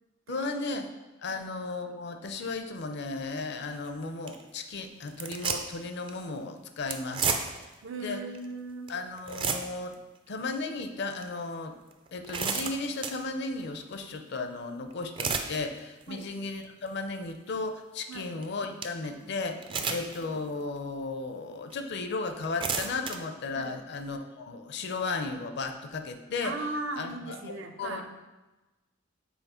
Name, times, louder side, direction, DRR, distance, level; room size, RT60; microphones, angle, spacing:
voice 1, 0.3-0.9 1.2-7.4 8.0-8.2 8.9-10.0 10.3-11.8 12.1-26.6 27.0-28.1, left 3 dB, 55° left, 7 dB, 0.5 m, -35 dB
sound 1, 3.7-3.9 4.3-4.4 5.1-5.8 6.1-6.2 6.9-7.7 8.4-8.5 8.9-9.0 9.2-9.9 10.4-10.6 11.2-11.3 11.9-13.2 14.9-15.6 16.0-16.3 16.9-17.0 18.4-18.5 18.8-18.9 19.6-20.2 20.8-20.9 21.7-21.8 22.4-23.2, right 5 dB, 25° right, 0.4 m, -31 dB
voice 2, 7.8-8.9 16.1-16.3 18.1-18.3 19.0-19.3 19.8-19.9 23.5-23.8 26.4-28.1, right 2 dB, 75° right, 5 dB, 0.7 m, -38 dB
5.7 x 4.0 x 4.3 m, 1.1 s
head